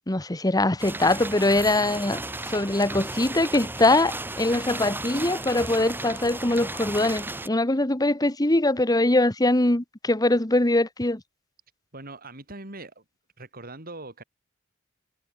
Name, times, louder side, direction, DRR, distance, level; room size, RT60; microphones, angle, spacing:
voice 1, 0.1-2.2 2.5-11.2, left 2 dB, 20° left, 1.5 m, -22 dB
sound 1, 0.8-7.5, right 2 dB, 10° right, 1.4 m, -34 dB
voice 2, 11.9-13.0 13.4-14.2, right 2 dB, 45° right, 5.9 m, -41 dB
head